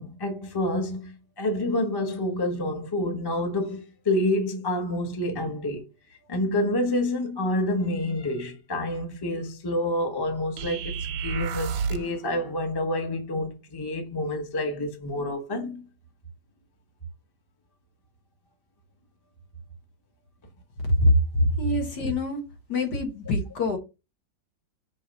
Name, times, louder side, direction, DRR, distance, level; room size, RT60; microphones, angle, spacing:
voice 1, 0.0-5.9 6.3-15.8, left 1 dB, 15° left, 0.8 m, -28 dB
sound 1, 10.6-12.2, right 6 dB, 80° right, 1.4 m, -30 dB
voice 2, 20.9-22.4 22.7-23.8, left 1 dB, 60° left, 2.0 m, -24 dB
5.9 x 3.0 x 5.2 m
omnidirectional pair, 2.0 m